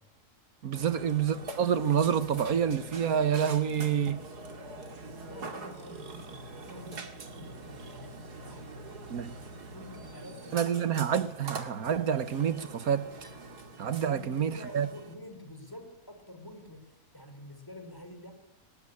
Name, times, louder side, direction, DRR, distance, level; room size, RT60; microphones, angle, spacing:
voice 1, 0.6-4.2 9.1-9.3 10.5-13.1 13.8-14.9, right 8 dB, 70° right, 1.6 m, -28 dB
Burping eructation, 0.7-15.1, right 2 dB, 85° right, 2.9 m, -44 dB
voice 2, 5.2-8.2 8.4-9.4 9.7-10.7 14.1-18.3, equal, 15° left, 4.9 m, -48 dB
21.0 x 19.5 x 10.0 m
omnidirectional pair, 1.6 m